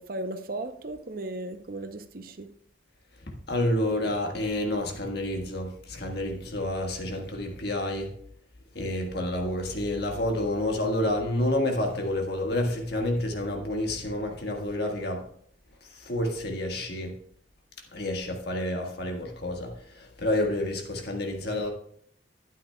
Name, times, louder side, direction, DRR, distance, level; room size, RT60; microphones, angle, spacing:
voice 1, 0.0-2.5, right 2 dB, 50° right, 0.7 m, -36 dB
voice 2, 3.3-8.2 8.7-15.3 15.8-17.2 17.9-21.7, left 1 dB, 55° left, 1.6 m, -29 dB
12.0 x 9.3 x 2.3 m
head